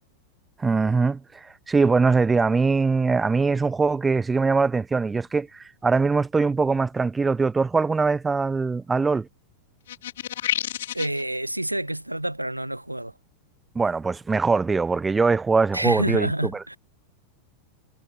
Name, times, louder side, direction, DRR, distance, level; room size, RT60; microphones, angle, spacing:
voice 1, 0.6-9.3 13.8-16.8, right 4 dB, 15° right, 3.6 m, -22 dB
sound 1, 9.9-11.2, left 12 dB, 60° left, 1.8 m, -29 dB
voice 2, 10.9-13.1 15.7-16.8, right 1 dB, 85° right, 2.4 m, -28 dB
figure-of-eight pair, 90°, 0 cm